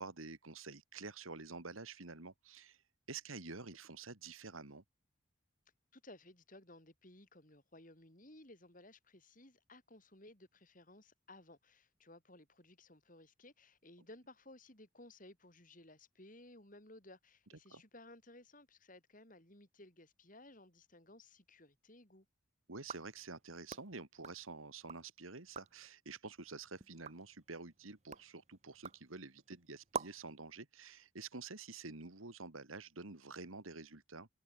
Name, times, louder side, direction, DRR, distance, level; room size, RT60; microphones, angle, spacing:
voice 1, 0.0-2.8 3.1-4.8 17.7-17.8 22.7-34.3, right 4 dB, 90° right, 2.3 m, -49 dB
voice 2, 5.9-22.3, left 1 dB, 40° left, 5.0 m, -58 dB
sound 1, 22.8-25.1 25.4-25.9 26.4-30.4, right 4 dB, 35° right, 1.1 m, -49 dB
head